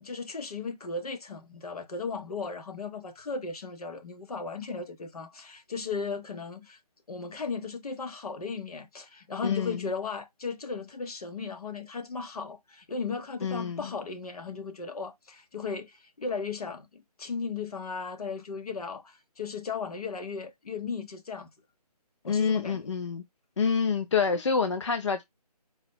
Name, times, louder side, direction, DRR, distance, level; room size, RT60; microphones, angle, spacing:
voice 1, 0.0-6.8 7.1-21.5 22.2-22.9, left 4 dB, 65° left, 0.9 m, -36 dB
voice 2, 9.4-9.9 13.4-13.8 22.2-23.2 23.6-25.2, left 5 dB, 45° left, 0.4 m, -27 dB
4.0 x 2.0 x 4.3 m
figure-of-eight pair, 160°, 21 cm